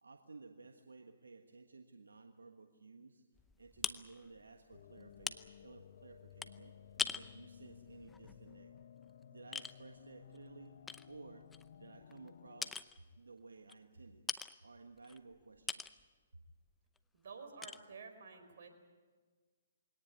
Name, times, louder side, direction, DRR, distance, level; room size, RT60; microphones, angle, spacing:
voice 1, 0.0-3.2 3.6-8.7 9.3-10.8 11.1-11.5 11.8-12.8 13.2-14.2 14.6-16.0, right 3 dB, 85° right, 5 dB, 1.4 m, -56 dB
sound 1, 3.4-9.2 9.5-9.7 10.3-10.4 10.9-12.3 12.6-13.0 13.7-13.8 14.3-14.5 15.0-16.0 16.4-16.7 17.0-17.1 17.6-17.8, left 5 dB, 10° left, 0.7 m, -43 dB
sound 2, 4.7-12.7, left 8 dB, 65° left, 1.0 m, -57 dB
voice 2, 17.1-18.7, right 5 dB, 60° right, 5 dB, 4.7 m, -51 dB
22.5 x 18.0 x 9.8 m, 1.5 s
hypercardioid pair, 135°, 0 cm